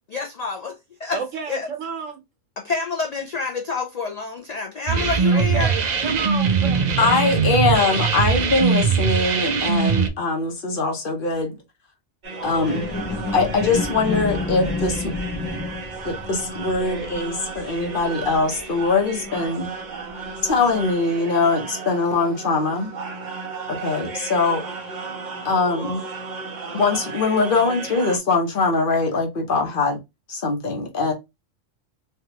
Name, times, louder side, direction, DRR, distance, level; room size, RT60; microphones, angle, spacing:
voice 1, 0.1-1.2 1.5-1.7 2.6-5.7, left 4 dB, 70° left, 0.3 m, -28 dB
voice 2, 1.1-2.2 5.3-7.1, right 6 dB, 85° right, 1.3 m, -31 dB
sound 1, 4.9-10.1, right 6 dB, 60° right, 0.4 m, -21 dB
voice 3, 7.0-11.5 12.4-12.8 13.3-15.1 16.0-19.7 20.4-22.9 23.7-24.6 25.4-26.0 26.7-30.0 30.3-31.1, left 3 dB, 50° left, 0.9 m, -22 dB
sound 2, 12.2-28.2, right 4 dB, 45° right, 0.9 m, -34 dB
sound 3, 12.4-19.9 20.4-20.5, left 3 dB, 25° left, 0.5 m, -31 dB
3.3 x 2.4 x 2.8 m
omnidirectional pair, 1.3 m